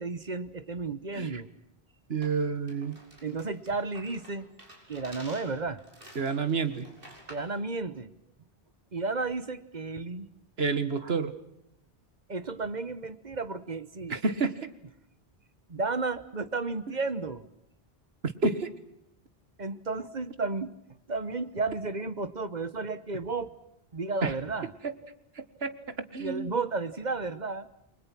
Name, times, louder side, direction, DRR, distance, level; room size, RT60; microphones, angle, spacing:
voice 1, 0.0-1.5 3.2-4.5 4.9-5.8 7.3-8.1 8.9-10.3 12.3-14.2 15.7-17.5 19.6-20.7 21.1-23.5 23.9-24.7 26.2-27.7, right 3 dB, 45° right, 13 dB, 1.3 m, -33 dB
voice 2, 2.1-3.0 6.2-6.9 10.6-11.3 14.1-14.7 18.2-18.7 24.2-24.3 25.4-26.6, right 4 dB, 80° right, 11 dB, 1.9 m, -29 dB
sound 1, 2.2-7.6, right 1 dB, 60° right, 5.8 m, -51 dB
30.0 x 22.5 x 6.1 m, 0.81 s
omnidirectional pair, 1.0 m